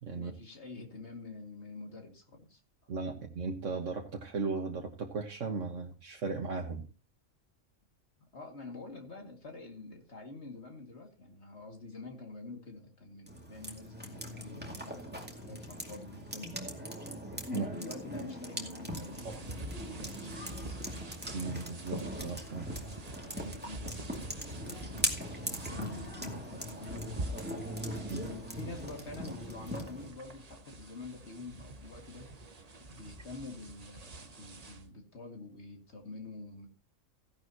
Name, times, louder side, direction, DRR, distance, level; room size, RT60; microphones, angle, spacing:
voice 1, 0.1-2.9 8.3-16.7 17.5-20.8 22.8-32.3 32.8-36.7, left 3 dB, 55° left, 3 dB, 2.5 m, -47 dB
voice 2, 2.9-6.8 17.5-17.7 19.2-19.4 21.3-22.9 28.1-28.2, right 4 dB, 70° right, 2 dB, 1.7 m, -37 dB
sound 1, 13.3-30.1, equal, 5° right, 2.3 m, -40 dB
sound 2, 18.9-34.9, right 2 dB, 30° right, 1.1 m, -46 dB
16.0 x 11.0 x 2.9 m, 0.34 s
omnidirectional pair, 1.4 m